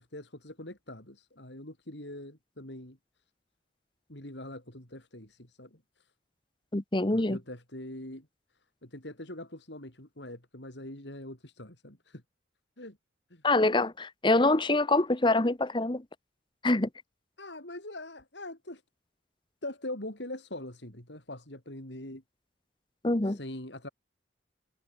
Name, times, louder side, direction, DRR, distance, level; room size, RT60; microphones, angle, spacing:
voice 1, 0.0-3.0 4.1-6.1 7.1-8.3 8.8-12.2 12.8-13.0 13.3-13.4 13.8-13.9 17.4-18.8 19.6-22.2 23.2-23.9, left 1 dB, 70° left, 5.8 m, -43 dB
voice 2, 6.7-7.4 13.4-16.0 16.6-16.9 23.0-23.4, left 2 dB, 25° left, 1.0 m, -25 dB
head